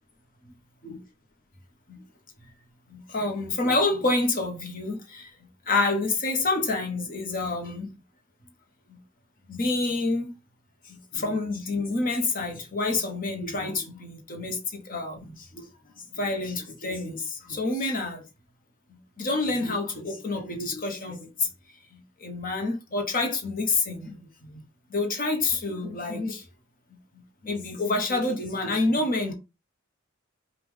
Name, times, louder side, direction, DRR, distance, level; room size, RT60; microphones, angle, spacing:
voice 1, 2.9-5.3 5.7-7.9 8.9-9.0 9.5-10.3 10.8-15.7 16.0-18.2 18.9-21.5 21.9-24.6 24.9-26.4 27.1-29.3, left 3 dB, 45° left, 1.2 m, -28 dB
5.3 x 2.5 x 3.4 m
head